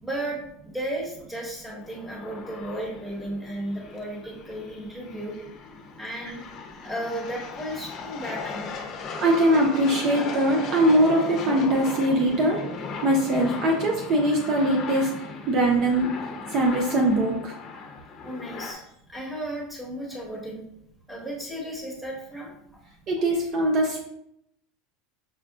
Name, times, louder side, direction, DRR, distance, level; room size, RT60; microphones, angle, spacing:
voice 1, 0.0-5.3 6.0-6.4 6.8-8.7 18.2-20.6 21.1-22.5, right 1 dB, 5° right, -2 dB, 1.3 m, -34 dB
sound 1, 1.8-18.7, left 4 dB, 45° left, 0.7 m, -37 dB
voice 2, 9.2-12.6 13.0-15.1 15.5-16.1 16.5-17.5 23.1-24.0, right 1 dB, 45° right, 1 dB, 0.6 m, -21 dB
5.6 x 2.3 x 2.3 m, 0.76 s
supercardioid pair, 115°, 0 cm